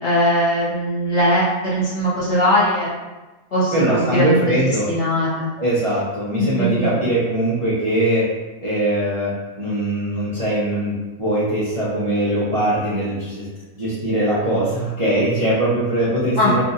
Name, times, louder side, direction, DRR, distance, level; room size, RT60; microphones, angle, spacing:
voice 1, 0.0-2.9 3.5-4.4 4.9-5.5 6.4-6.9 16.4-16.6, equal, 40° left, -9 dB, 1.3 m, -19 dB
voice 2, 3.7-4.9 5.6-8.3 8.6-13.5 13.8-16.6, right 1 dB, 30° right, -10 dB, 0.6 m, -21 dB
2.8 x 2.5 x 3.9 m, 1.1 s
omnidirectional pair, 1.6 m